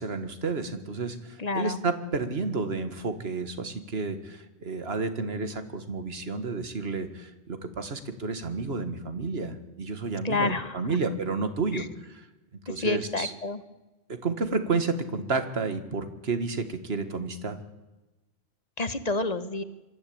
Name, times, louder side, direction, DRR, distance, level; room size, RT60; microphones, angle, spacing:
voice 1, 0.0-12.2 12.7-13.3 14.1-17.6, right 4 dB, 65° right, 9 dB, 1.9 m, -31 dB
voice 2, 1.4-1.8 10.2-10.8 11.7-11.9 12.7-13.6 18.8-19.6, left 3 dB, 40° left, 12 dB, 1.1 m, -29 dB
24.5 x 12.5 x 8.6 m, 1.1 s
omnidirectional pair, 1.1 m